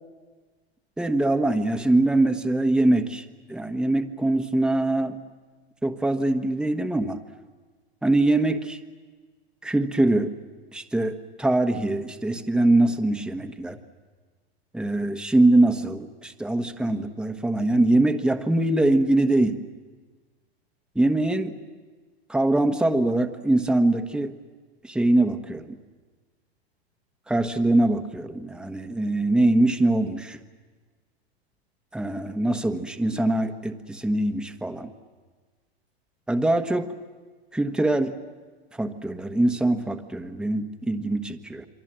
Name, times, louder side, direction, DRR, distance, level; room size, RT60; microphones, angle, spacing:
voice 1, 1.0-5.2 5.8-7.2 8.0-8.8 9.6-10.3 10.7-13.8 14.7-19.6 20.9-21.6 22.3-24.3 24.8-25.8 27.3-30.4 31.9-34.9 36.3-36.9 37.5-38.1 38.7-41.7, right 2 dB, 5° right, 6 dB, 1.3 m, -23 dB
28.5 x 23.5 x 7.6 m, 1.4 s
hypercardioid pair, 105°, 32 cm